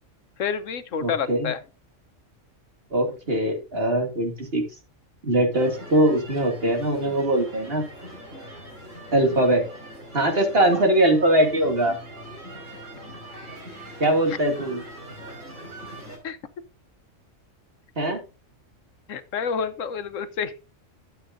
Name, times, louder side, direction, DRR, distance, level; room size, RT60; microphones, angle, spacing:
voice 1, 0.4-1.6 16.2-16.4 19.1-20.5, left 6 dB, 85° left, 1.3 m, -28 dB
voice 2, 1.0-1.5 2.9-4.6 5.2-7.8 9.1-9.7 10.1-12.0 14.0-14.8 18.0-18.2, right 1 dB, 50° right, 2.7 m, -21 dB
sound 1, 5.5-16.2, right 1 dB, 85° right, 5.4 m, -41 dB
12.5 x 7.9 x 2.6 m
omnidirectional pair, 1.3 m